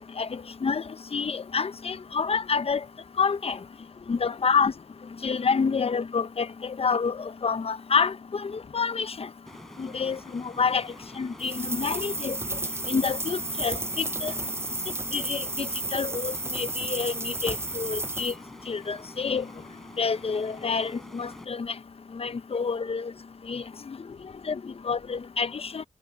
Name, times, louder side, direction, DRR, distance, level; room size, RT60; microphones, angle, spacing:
voice 1, 1.1-2.8 3.2-3.6 4.1-4.7 5.2-9.3 9.8-10.8 11.2-12.4 12.9-14.3 15.1-18.3 18.7-19.4 20.0-21.7 22.2-23.1 23.5-23.6 24.5-24.6 24.9-25.8, left 5 dB, 60° left, 0.7 m, -28 dB
voice 2, 3.8-4.4 12.5-12.6 14.6-14.8 22.5-22.6 23.7-24.8, left 5 dB, 75° left, 2.6 m, -46 dB
sound 1, 9.5-21.4, equal, 5° left, 4.2 m, -47 dB
sound 2, 11.4-18.4, right 2 dB, 20° right, 0.6 m, -32 dB
cardioid pair, 40°, 11 cm